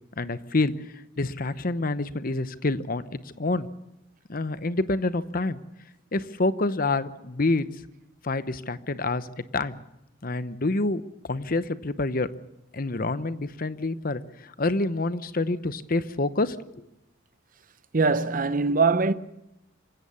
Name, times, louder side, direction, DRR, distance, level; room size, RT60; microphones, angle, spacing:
voice 1, 0.2-0.7 1.2-3.0 3.4-3.7 4.3-5.6 6.1-7.7 8.2-9.3 9.5-9.8 10.2-11.0 11.3-12.3 12.7-16.6, left 2 dB, 45° left, 0.9 m, -27 dB
voice 2, 17.9-19.1, right 4 dB, 45° right, 0.8 m, -22 dB
26.5 x 16.0 x 7.0 m
head